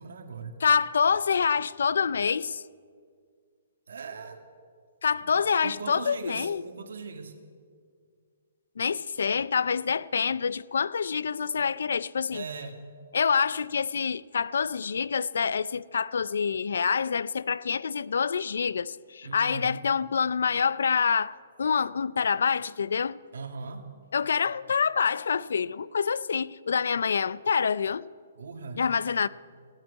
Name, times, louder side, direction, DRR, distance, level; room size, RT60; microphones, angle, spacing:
voice 1, 0.0-0.6 3.9-4.4 5.2-5.3 5.6-7.3 12.3-12.8 19.2-19.7 23.3-23.8 28.4-28.8, right 4 dB, 75° right, 2.1 m, -39 dB
voice 2, 0.6-2.6 5.0-6.6 8.8-12.4 13.1-23.2 24.1-28.1 28.8-29.3, left 6 dB, 75° left, 0.4 m, -26 dB
16.0 x 8.9 x 9.4 m
hypercardioid pair, 170°, 0 cm